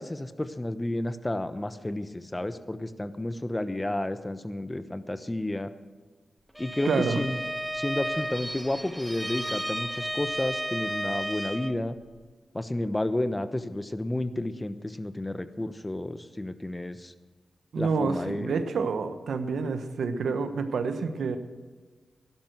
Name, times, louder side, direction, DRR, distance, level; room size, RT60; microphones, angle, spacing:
voice 1, 0.0-5.7 6.6-6.9 7.2-7.4 7.7-12.0 12.5-17.1 17.8-18.6, left 1 dB, 20° left, 11 dB, 1.0 m, -31 dB
Bowed string instrument, 6.5-11.8, equal, 5° right, 0.7 m, -33 dB
voice 2, 6.8-7.2 17.7-21.4, right 5 dB, 80° right, 9 dB, 1.0 m, -28 dB
12.0 x 11.5 x 7.8 m, 1.4 s
cardioid pair, 45°, 0 cm